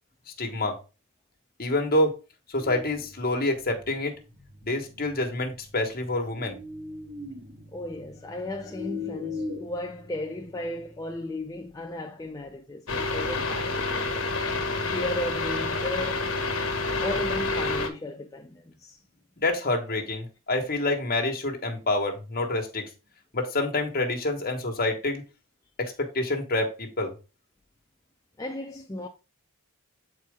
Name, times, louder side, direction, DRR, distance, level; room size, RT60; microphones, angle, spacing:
voice 1, 0.4-0.8 1.6-2.2 2.5-4.1 4.6-6.6 19.4-22.9 23.3-25.2 25.8-27.1, left 2 dB, 40° left, 1.4 m, -27 dB
sound 1, 2.5-11.2, left 3 dB, 55° right, 2.5 m, -41 dB
voice 2, 7.7-14.2 14.9-16.3 17.0-19.0 28.4-29.1, left 1 dB, 15° left, 0.4 m, -35 dB
sound 2, 12.9-17.9, left 3 dB, 65° left, 1.3 m, -28 dB
7.4 x 4.4 x 3.6 m
head